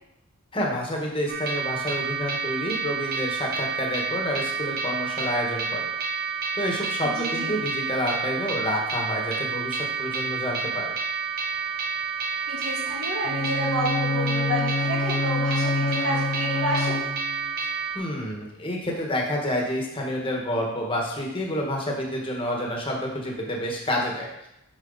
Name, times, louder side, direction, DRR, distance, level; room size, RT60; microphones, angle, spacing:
voice 1, 0.5-5.9 6.6-10.9 17.9-24.3, left 1 dB, 25° left, -1 dB, 1.4 m, -29 dB
sound 1, 1.3-18.0, right 5 dB, 45° right, 0.9 m, -29 dB
voice 2, 7.0-7.5 12.2-17.0, equal, 80° right, -4 dB, 2.5 m, -30 dB
Bowed string instrument, 13.2-17.5, left 2 dB, 40° left, 0.5 m, -27 dB
7.0 x 6.1 x 4.0 m, 0.85 s
head